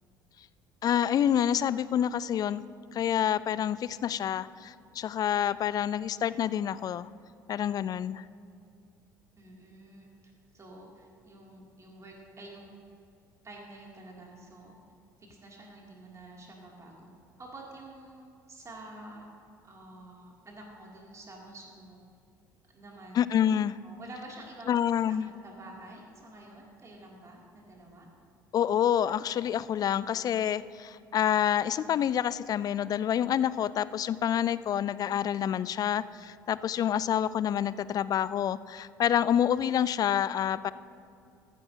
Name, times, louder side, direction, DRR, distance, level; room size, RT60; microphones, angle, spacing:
voice 1, 0.8-2.6 2.9-7.1 7.5-8.2 23.2-23.8 24.7-25.3 28.5-40.7, left 9 dB, 35° left, 18 dB, 0.3 m, -28 dB
voice 2, 9.4-10.1 10.5-12.8 13.4-14.8 15.2-17.1 17.4-18.2 18.5-19.3 19.6-22.0 22.7-23.3 23.8-28.1, right 2 dB, 30° right, -2 dB, 2.7 m, -49 dB
14.0 x 10.5 x 2.8 m, 2.6 s
figure-of-eight pair, 60°, 11 cm